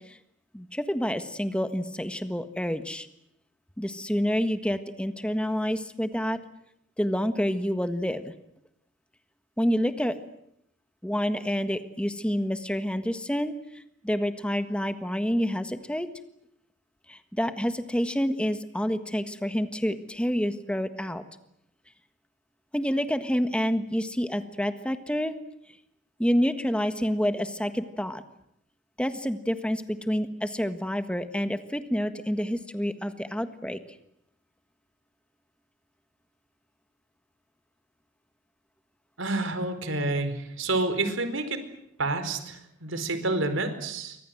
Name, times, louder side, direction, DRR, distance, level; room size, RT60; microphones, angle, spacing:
voice 1, 0.5-3.1 3.8-6.4 7.0-8.3 9.6-10.1 11.0-16.1 17.1-21.2 22.7-25.3 26.2-28.2 29.0-33.8, equal, 5° left, 9 dB, 1.5 m, -28 dB
voice 2, 39.2-41.6 42.0-44.2, right 2 dB, 75° right, 9 dB, 4.7 m, -29 dB
29.5 x 25.0 x 7.9 m, 0.77 s
head